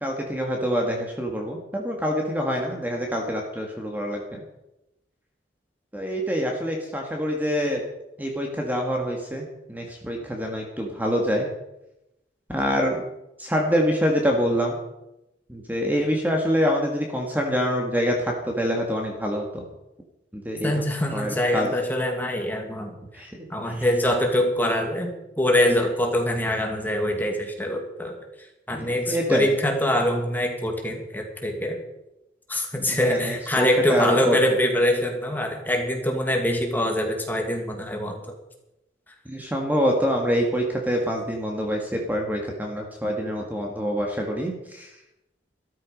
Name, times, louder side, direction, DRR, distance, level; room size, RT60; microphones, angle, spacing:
voice 1, 0.0-4.4 5.9-7.8 8.2-11.5 12.5-13.0 13.4-14.8 15.5-19.6 20.3-20.8 21.1-21.7 23.1-23.9 28.7-29.5 32.8-34.4 39.3-44.9, equal, 10° right, 1 dB, 1.8 m, -26 dB
voice 2, 20.6-22.9 23.5-28.2 28.7-31.8 32.5-38.2, left 1 dB, 10° left, 2 dB, 2.2 m, -24 dB
13.5 x 13.5 x 5.3 m, 0.91 s
head